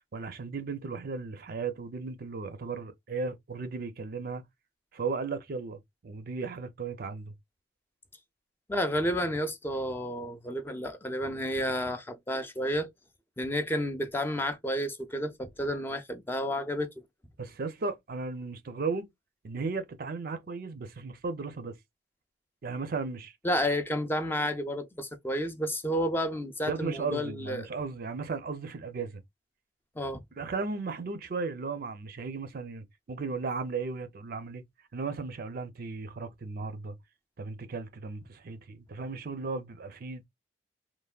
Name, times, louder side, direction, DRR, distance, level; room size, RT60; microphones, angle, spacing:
voice 1, 0.1-4.4 4.9-7.3 17.4-19.1 19.4-21.8 22.6-23.3 26.7-29.2 30.4-34.6 34.9-37.0 37.4-40.2, right 4 dB, 50° right, 0.4 m, -35 dB
voice 2, 8.7-12.9 13.4-16.9 23.4-27.7 30.0-30.2, equal, 10° left, 0.4 m, -31 dB
3.3 x 2.1 x 2.2 m
head